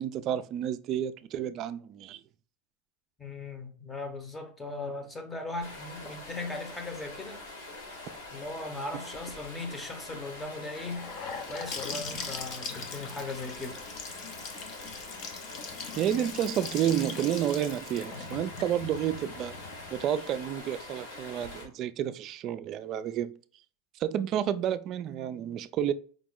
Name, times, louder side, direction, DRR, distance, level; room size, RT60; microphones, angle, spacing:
voice 1, 0.0-2.2 16.0-19.5 19.9-23.3 24.0-25.9, right 10 dB, 45° right, 0.3 m, -30 dB
voice 2, 3.2-7.4 8.3-11.1 11.5-13.8, left 2 dB, 15° left, 0.8 m, -38 dB
Stream, 5.6-21.6, left 2 dB, 80° left, 2.1 m, -44 dB
Gurgling / Sink (filling or washing) / Bathtub (filling or washing), 10.7-20.6, left 5 dB, 45° left, 0.7 m, -41 dB
5.0 x 2.0 x 3.7 m
supercardioid pair, 120°, 0 cm